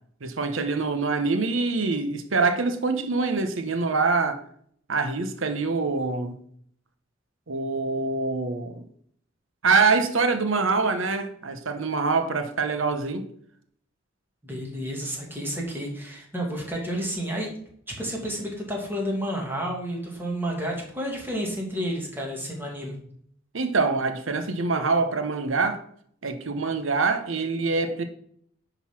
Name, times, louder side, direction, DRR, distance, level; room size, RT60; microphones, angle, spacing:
voice 1, 0.2-4.4 4.9-6.4 7.5-8.8 9.6-13.3 23.5-25.8 26.2-28.0, right 4 dB, 70° right, 1.0 m, -25 dB
voice 2, 14.4-17.5 18.0-23.0, equal, 10° right, 2.3 m, -31 dB
10.0 x 4.0 x 6.1 m
head